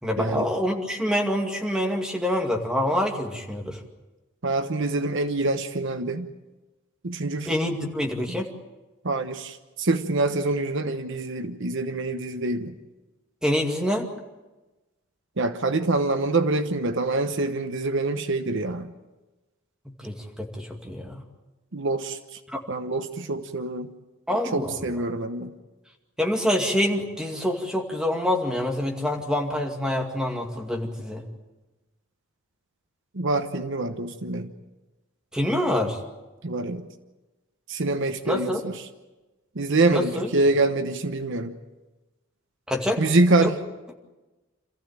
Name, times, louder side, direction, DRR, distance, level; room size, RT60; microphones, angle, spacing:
voice 1, 0.0-3.8 7.5-8.5 13.4-14.1 20.0-21.2 22.5-22.6 24.3-24.9 26.2-31.2 35.3-36.0 38.2-38.6 39.9-40.3 42.7-43.0 43.4-43.5, left 1 dB, 5° right, 1 dB, 2.3 m, -26 dB
voice 2, 4.4-6.3 7.0-7.5 9.0-12.7 15.4-18.9 21.7-22.4 22.7-23.9 24.5-25.5 33.1-34.5 36.4-36.9 37.7-38.8 39.5-41.6 43.0-43.5, right 2 dB, 60° right, 9 dB, 1.1 m, -25 dB
27.0 x 15.0 x 8.9 m, 1.1 s
head